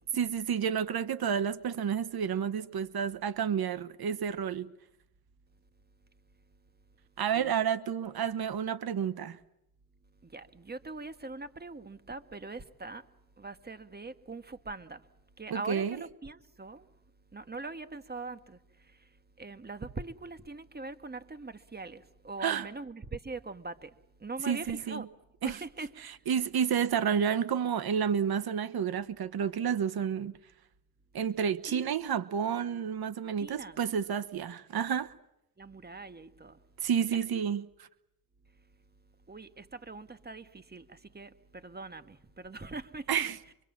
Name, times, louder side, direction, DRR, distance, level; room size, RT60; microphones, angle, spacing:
voice 1, 0.1-4.7 7.2-9.4 15.5-16.0 22.4-22.7 24.5-25.1 25.4-25.6 26.0-30.3 31.1-35.1 36.8-37.9 43.1-43.4, right 8 dB, 90° right, 1.1 m, -30 dB
voice 2, 10.2-13.1 13.4-15.0 15.4-16.9 17.3-19.1 19.4-25.1 25.4-25.9 31.7-32.2 33.4-33.8 35.6-36.6 37.0-37.1 39.3-43.2, right 3 dB, 25° right, 1.6 m, -42 dB
24.5 x 24.0 x 7.4 m
cardioid pair, 75°, 36 cm